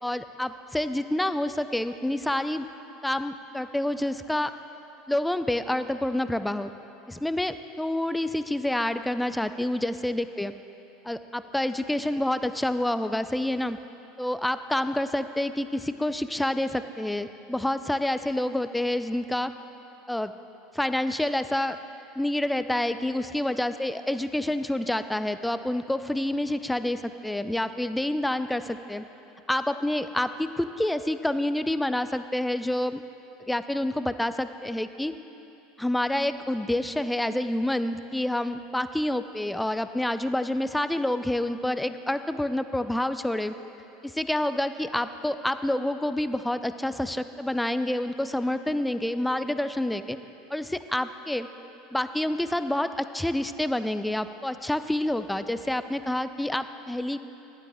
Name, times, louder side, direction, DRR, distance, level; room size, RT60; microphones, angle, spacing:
voice 1, 0.0-2.7 3.0-4.5 5.1-6.7 7.1-10.5 11.0-13.8 14.2-19.5 20.1-20.3 20.7-21.8 22.2-29.0 29.5-33.0 33.5-35.1 35.8-43.5 44.0-50.2 50.5-51.5 51.9-57.2, left 1 dB, 5° left, 11 dB, 0.4 m, -28 dB
11.5 x 11.5 x 3.5 m, 2.9 s
figure-of-eight pair, 75°, 0 cm